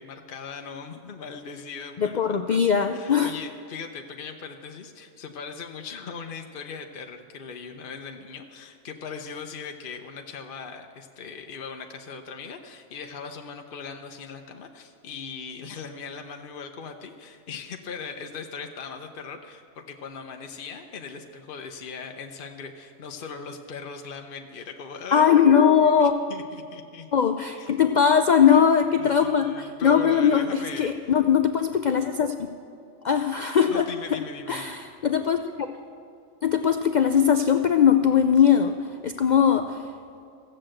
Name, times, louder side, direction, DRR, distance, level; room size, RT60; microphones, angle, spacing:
voice 1, 0.0-27.1 27.6-27.8 28.5-28.6 29.0-31.1 33.7-34.8, left 5 dB, 50° left, 4 dB, 0.8 m, -39 dB
voice 2, 2.0-3.3 25.1-26.1 27.1-32.3 33.0-33.8 34.1-34.2 34.5-35.7 36.4-38.7 39.0-39.8, left 7 dB, 80° left, 7 dB, 0.4 m, -20 dB
15.0 x 7.7 x 7.7 m, 2.6 s
omnidirectional pair, 1.4 m